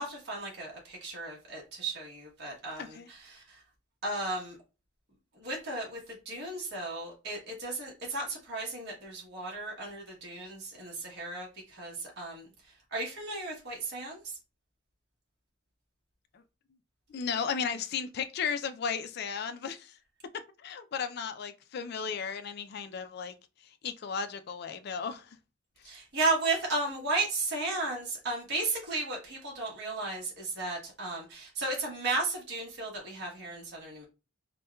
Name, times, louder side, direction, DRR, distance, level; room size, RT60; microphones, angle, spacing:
voice 1, 0.0-3.4 4.0-4.6 5.4-6.0 6.2-12.5 12.9-14.2 25.8-34.0, right 2 dB, 50° right, 1.1 m, -34 dB
voice 2, 17.1-19.9 20.6-23.3 23.8-25.2, left 6 dB, 50° left, 0.3 m, -35 dB
4.3 x 2.2 x 2.3 m
head